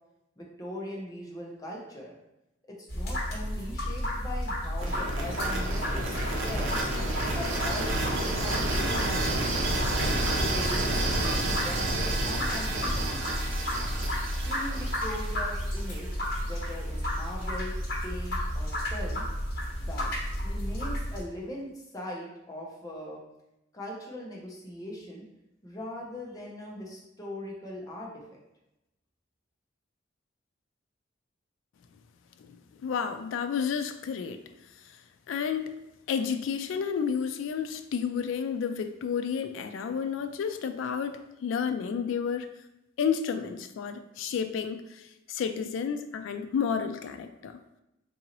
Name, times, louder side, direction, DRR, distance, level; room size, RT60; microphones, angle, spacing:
voice 1, 0.4-2.2 2.7-6.8 7.3-9.9 10.3-13.3 14.4-17.7 18.0-19.3 19.8-23.2 23.7-25.3 25.6-28.2, left 1 dB, 20° left, -2 dB, 0.7 m, -40 dB
sound 1, 2.9-21.2, equal, 55° left, 1.3 m, -32 dB
sound 2, 4.8-16.7, right 2 dB, 85° right, 0.7 m, -31 dB
voice 2, 32.8-34.4 35.3-35.7 36.1-42.5 43.0-47.6, left 6 dB, 75° left, 10 dB, 0.3 m, -31 dB
3.8 x 2.7 x 2.9 m, 0.89 s
head